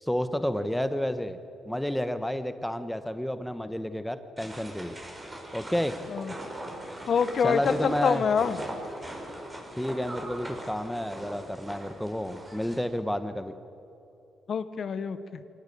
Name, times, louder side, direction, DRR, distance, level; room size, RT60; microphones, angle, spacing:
voice 1, 0.0-1.4 1.6-5.0 5.5-5.9 7.4-8.2 9.8-13.5, equal, 5° left, 10 dB, 1.1 m, -30 dB
sound 1, 4.4-12.8, right 1 dB, 20° right, 5.7 m, -40 dB
voice 2, 7.1-8.6 14.5-15.4, left 6 dB, 55° left, 12 dB, 1.2 m, -26 dB
24.0 x 19.0 x 8.6 m, 2.8 s
cardioid pair, 90°, 0 cm